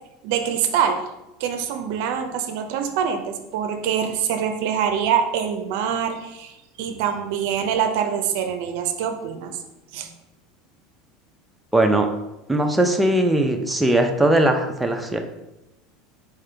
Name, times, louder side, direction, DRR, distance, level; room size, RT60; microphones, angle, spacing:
voice 1, 0.2-1.0 1.4-9.6 9.9-10.1, right 8 dB, 70° right, 6 dB, 0.5 m, -24 dB
voice 2, 11.7-12.1 12.5-15.2, right 1 dB, 5° right, 3 dB, 0.5 m, -19 dB
4.3 x 3.6 x 3.3 m, 0.94 s
supercardioid pair, 120°, 0 cm